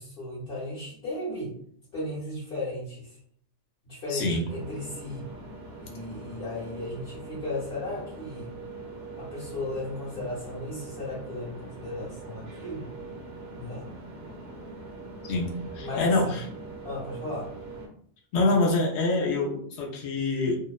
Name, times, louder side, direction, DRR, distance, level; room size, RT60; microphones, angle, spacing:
voice 1, 0.0-1.5 1.9-3.2 3.8-5.3 5.8-8.5 9.2-12.9 13.6-13.9 15.8-16.4 16.8-17.5, left 2 dB, 60° left, -10 dB, 1.1 m, -35 dB
voice 2, 4.1-4.4 15.3-16.4 18.3-20.6, left 2 dB, 80° left, -1 dB, 0.9 m, -25 dB
sound 1, 4.5-17.9, right 3 dB, 65° right, 0.9 m, -42 dB
2.7 x 2.0 x 2.2 m, 0.62 s
omnidirectional pair, 1.2 m